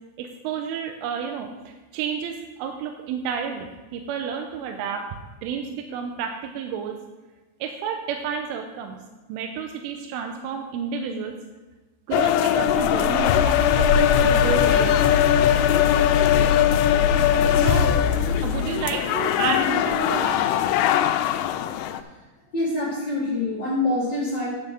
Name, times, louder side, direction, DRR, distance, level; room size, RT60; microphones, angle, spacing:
voice 1, 0.2-5.1 5.4-7.0 7.6-9.0 9.3-11.4 12.1-14.9 17.6-18.0 18.4-20.4, right 7 dB, 85° right, 4 dB, 3.1 m, -30 dB
sound 1, 12.1-22.0, left 11 dB, 85° left, 3.1 m, -21 dB
sound 2, 12.6-18.4, left 1 dB, 65° left, 3.0 m, -30 dB
sound 3, 13.6-18.6, left 7 dB, 65° right, 3.5 m, -26 dB
voice 2, 22.5-24.5, left 2 dB, 35° left, -9 dB, 1.7 m, -25 dB
9.8 x 5.6 x 6.9 m, 1.2 s
omnidirectional pair, 5.6 m